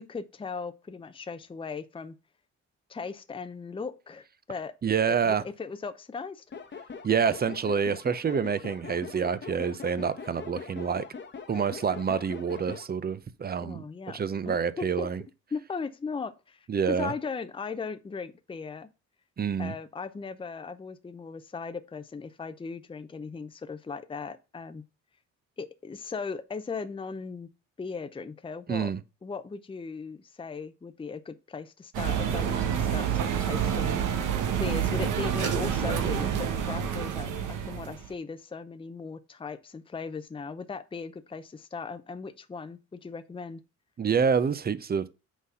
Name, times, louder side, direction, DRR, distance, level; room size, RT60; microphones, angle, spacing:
voice 1, 0.0-2.2 2.9-4.7 5.1-6.4 13.6-15.1 15.5-18.9 19.6-24.8 25.6-27.5 27.8-28.9 29.2-34.0 34.6-43.6, left 5 dB, 15° left, 0.6 m, -38 dB
voice 2, 4.8-5.4 7.0-11.0 11.5-15.2 16.7-17.1 19.4-19.7 28.7-29.0 44.0-45.1, right 6 dB, 30° right, 0.6 m, -27 dB
sound 1, 6.5-12.9, left 5 dB, 35° left, 1.1 m, -42 dB
sound 2, 31.9-38.1, right 8 dB, 85° right, 1.2 m, -28 dB
6.0 x 4.1 x 5.4 m
cardioid pair, 90°, 30 cm